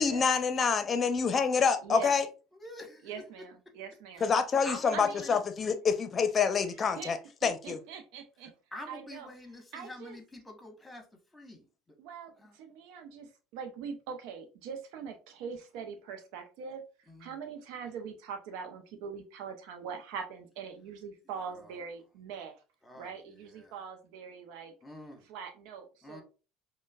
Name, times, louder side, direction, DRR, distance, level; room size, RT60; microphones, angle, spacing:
voice 1, 0.0-2.3 4.2-7.8, left 6 dB, 35° left, 0.7 m, -27 dB
voice 2, 1.8-2.2 3.0-4.3 4.9-5.4 7.0-7.1 7.4-8.5 8.9-9.3 9.7-10.2 12.0-13.3 13.5-16.8 17.2-22.6 22.9-24.7 25.2-26.2, right 6 dB, 70° right, 0.6 m, -42 dB
voice 3, 2.5-3.1 4.6-5.4 8.7-11.1 11.3-11.7 12.4-12.6 17.1-17.4 21.5-21.8 22.8-23.7 24.8-25.2 26.0-26.2, left 1 dB, 10° left, 1.2 m, -46 dB
5.0 x 2.2 x 2.3 m
hypercardioid pair, 70°, 0 cm